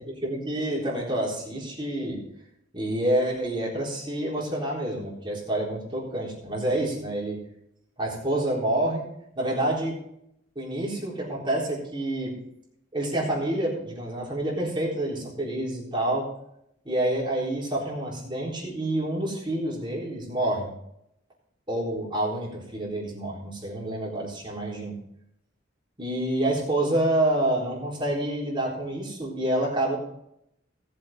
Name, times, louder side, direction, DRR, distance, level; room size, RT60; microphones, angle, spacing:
voice 1, 0.2-2.2 2.7-7.4 8.0-9.1 9.3-10.0 10.6-12.3 12.9-16.3 16.8-20.7 21.7-24.9 26.0-30.0, right 1 dB, 25° right, -4 dB, 4.0 m, -28 dB
18.5 x 7.6 x 3.7 m, 0.76 s
head